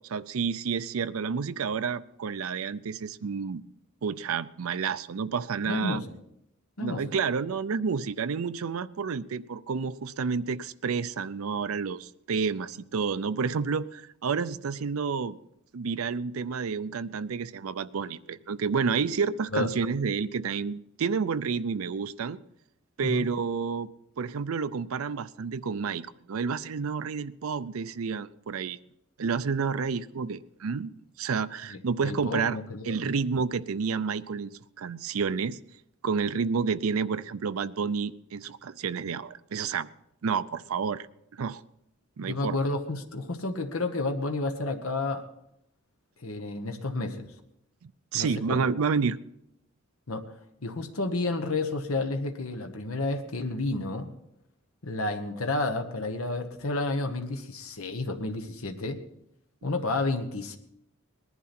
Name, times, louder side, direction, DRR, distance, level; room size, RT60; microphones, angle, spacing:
voice 1, 0.0-3.6 4.0-6.0 6.8-15.4 15.7-22.4 23.0-28.8 29.2-30.9 31.2-32.6 32.9-34.5 34.8-35.6 36.0-39.9 40.2-41.1 41.3-41.6 42.2-42.6 47.8-49.2, right 5 dB, 80° right, 14 dB, 0.5 m, -30 dB
voice 2, 5.6-6.1 6.8-7.2 19.5-19.7 23.0-23.3 31.7-33.1 42.2-45.2 46.2-47.3 48.1-48.6 50.1-50.2 50.6-54.1 54.8-59.0 59.6-60.6, left 2 dB, 90° left, 5 dB, 1.2 m, -31 dB
19.5 x 11.0 x 4.3 m, 0.80 s
head